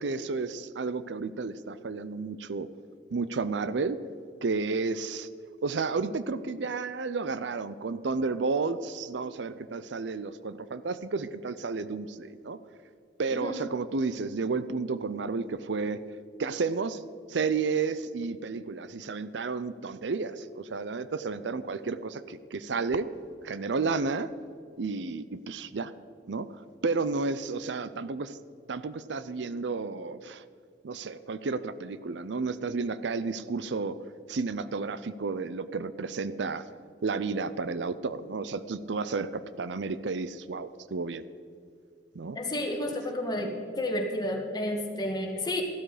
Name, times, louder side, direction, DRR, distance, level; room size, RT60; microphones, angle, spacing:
voice 1, 0.0-2.7 3.1-4.0 4.4-5.3 5.6-12.6 13.2-16.0 16.4-17.0 17.3-23.1 23.4-24.3 24.8-25.9 26.3-26.5 26.8-28.4 28.7-30.4 30.8-34.0 34.3-36.6 37.0-41.2 42.1-42.4, right 4 dB, 85° right, 14 dB, 0.6 m, -32 dB
voice 2, 42.4-45.6, left 1 dB, 25° left, 1 dB, 2.0 m, -31 dB
14.5 x 12.5 x 5.0 m, 2.3 s
head